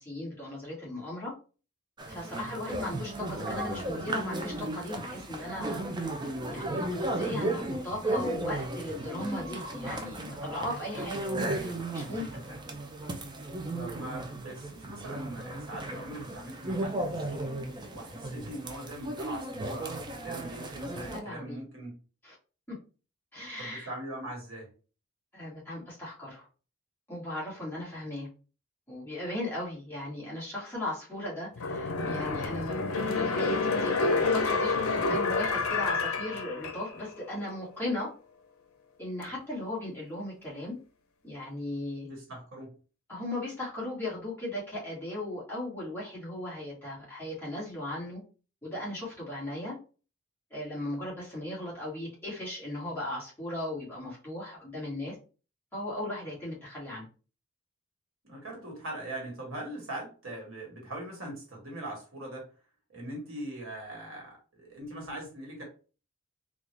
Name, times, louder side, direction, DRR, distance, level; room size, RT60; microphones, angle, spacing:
voice 1, 0.0-1.3 2.1-6.1 6.5-11.2 11.5-12.3 21.0-21.6 22.2-22.3 22.7-22.8 23.3-23.9 25.3-26.4 27.1-28.3 28.9-38.1 39.0-40.8 41.2-42.1 43.1-48.2 48.6-49.8 50.5-55.2 55.7-57.1, left 1 dB, 10° left, -7 dB, 1.7 m, -37 dB
sound 1, 2.0-21.2, right 2 dB, 20° right, 0.4 m, -35 dB
voice 2, 13.8-17.5 17.9-22.0 23.6-24.7 35.0-35.3 42.1-42.7 58.2-62.5 62.9-65.6, right 1 dB, 70° right, 0 dB, 1.5 m, -41 dB
sound 2, 31.6-37.1 37.5-37.6, left 3 dB, 85° left, 0.6 m, -29 dB
3.7 x 2.4 x 3.2 m, 0.36 s
head